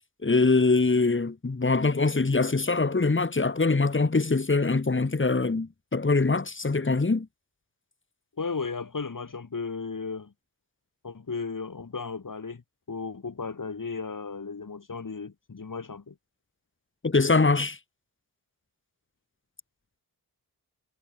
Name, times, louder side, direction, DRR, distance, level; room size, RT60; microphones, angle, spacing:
voice 1, 0.2-7.3 17.0-17.8, left 3 dB, 30° left, 2.9 m, -23 dB
voice 2, 8.4-10.3 11.0-12.6 12.9-16.1, left 4 dB, 50° left, 6.1 m, -35 dB
wide cardioid pair, 95°, 39 cm